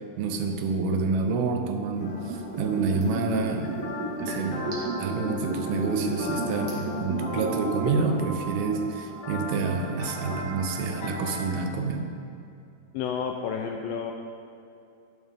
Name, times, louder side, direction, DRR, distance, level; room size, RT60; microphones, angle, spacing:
voice 1, 0.2-3.9 4.2-12.2, right 4 dB, 80° right, 4 dB, 2.6 m, -28 dB
sound 1, 2.0-11.4, left 2 dB, 65° left, 3.1 m, -39 dB
Liquid, 2.0-8.1 8.4-8.5, right 2 dB, 55° right, 2.7 m, -32 dB
voice 2, 12.9-14.1, left 7 dB, 85° left, 3 dB, 2.0 m, -30 dB
11.5 x 9.8 x 3.6 m, 2.6 s
omnidirectional pair, 4.6 m